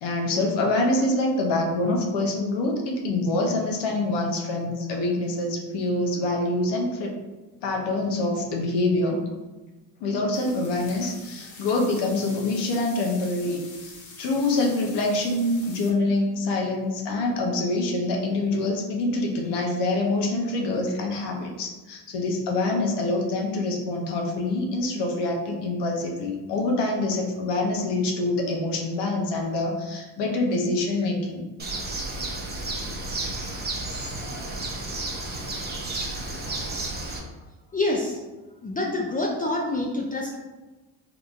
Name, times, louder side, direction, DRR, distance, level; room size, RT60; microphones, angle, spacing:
voice 1, 0.0-7.1 7.6-9.2 10.0-13.9 14.2-31.4, left 2 dB, 80° left, 1 dB, 0.8 m, -25 dB
sound 1, 10.3-15.9, left 4 dB, 50° left, 0.8 m, -45 dB
Bird, 31.6-37.2, right 2 dB, 25° right, 0.6 m, -32 dB
voice 2, 37.7-38.2 38.6-40.4, left 2 dB, 20° left, -1 dB, 0.4 m, -26 dB
3.7 x 2.9 x 2.4 m, 1.2 s
cardioid pair, 100°, 40 cm